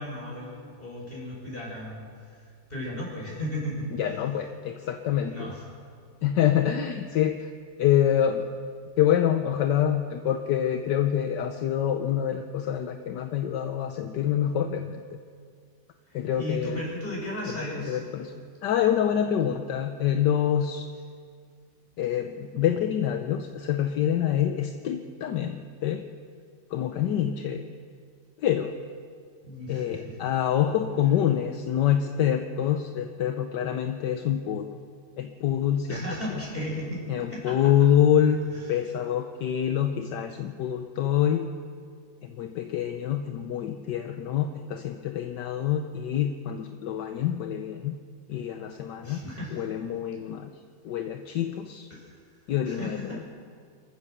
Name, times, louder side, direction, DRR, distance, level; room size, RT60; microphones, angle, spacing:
voice 1, 0.0-2.4 2.7-3.9 5.3-5.6 16.1-18.0 29.4-30.1 35.9-37.0 37.3-37.7 38.7-38.8 49.0-49.6 51.9-52.1 52.6-53.2, left 1 dB, 30° left, -4 dB, 7.1 m, -35 dB
voice 2, 3.9-5.5 6.2-7.5 7.8-8.5 9.0-15.0 16.1-16.8 17.5-20.9 22.0-26.1 26.7-27.7 28.4-28.8 29.7-34.8 35.2-36.0 37.1-38.4 38.7-41.5 42.2-48.0 48.3-49.3 49.5-50.5 50.8-51.9 52.5-53.2, left 10 dB, 70° left, 6 dB, 1.4 m, -26 dB
26.0 x 14.5 x 6.9 m, 2.2 s
omnidirectional pair, 2.0 m